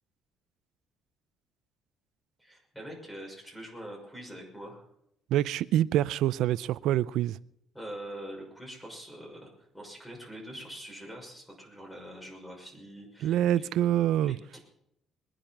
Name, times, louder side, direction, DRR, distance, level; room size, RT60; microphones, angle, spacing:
voice 1, 2.4-4.8 7.7-13.7 14.2-14.6, right 1 dB, 5° left, 6.0 m, -44 dB
voice 2, 5.3-7.4 13.2-14.4, right 12 dB, 75° right, 0.5 m, -26 dB
22.5 x 10.0 x 6.0 m
cardioid pair, 125°, 0 cm